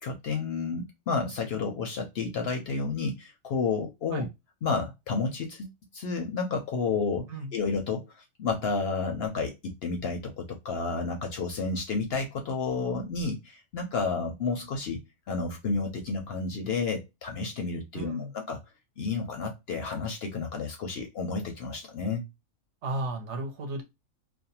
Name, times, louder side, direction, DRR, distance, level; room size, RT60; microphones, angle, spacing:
voice 1, 0.0-4.3 4.6-7.3 7.5-15.0 15.3-18.6 19.0-22.2, left 4 dB, 65° left, 3 dB, 0.6 m, -31 dB
voice 2, 17.9-18.3 22.8-23.8, right 2 dB, 65° right, 4 dB, 0.9 m, -34 dB
2.5 x 2.1 x 2.7 m, 0.22 s
omnidirectional pair, 1.4 m